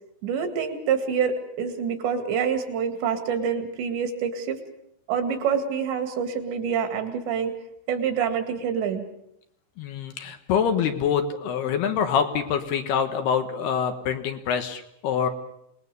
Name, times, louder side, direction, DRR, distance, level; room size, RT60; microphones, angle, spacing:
voice 1, 0.2-4.6 5.1-7.5 7.9-9.1, right 7 dB, 70° right, 7 dB, 4.3 m, -26 dB
voice 2, 9.8-15.3, left 7 dB, 70° left, 7 dB, 3.1 m, -25 dB
27.5 x 20.0 x 6.9 m, 0.77 s
omnidirectional pair, 5.4 m